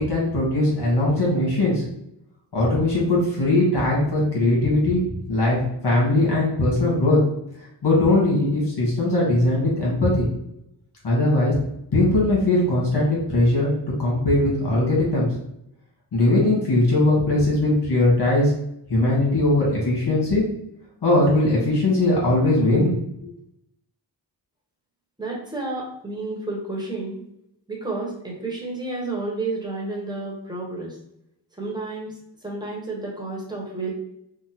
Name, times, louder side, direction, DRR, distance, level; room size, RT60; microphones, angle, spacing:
voice 1, 0.0-1.8 2.5-5.0 5.3-5.6 5.8-7.2 7.8-10.3 11.0-11.5 11.9-13.7 14.0-15.3 16.1-18.5 18.9-20.4 21.0-22.9, left 2 dB, 65° left, -5 dB, 1.5 m, -20 dB
voice 2, 25.2-27.2 27.7-31.0 31.6-33.9, right 3 dB, 10° right, -3 dB, 1.1 m, -31 dB
3.6 x 2.1 x 2.9 m, 0.78 s
wide cardioid pair, 75°, 43 cm